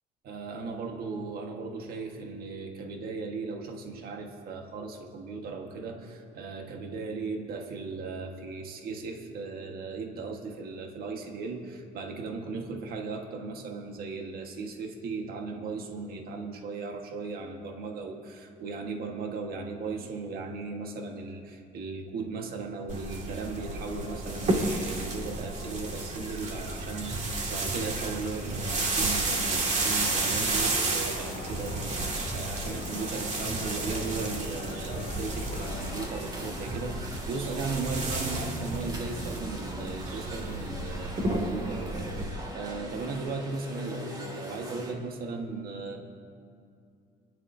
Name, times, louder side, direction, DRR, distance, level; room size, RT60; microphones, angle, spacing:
voice 1, 0.2-46.0, right 4 dB, 65° right, 3 dB, 1.6 m, -37 dB
sound 1, 22.9-42.3, right 2 dB, 45° right, 2.2 m, -32 dB
sound 2, 31.0-36.1, left 5 dB, 70° left, 2.0 m, -43 dB
sound 3, 35.5-44.9, right 1 dB, 25° right, 2.4 m, -43 dB
27.0 x 11.0 x 2.8 m, 2.5 s
cardioid pair, 110°, 17 cm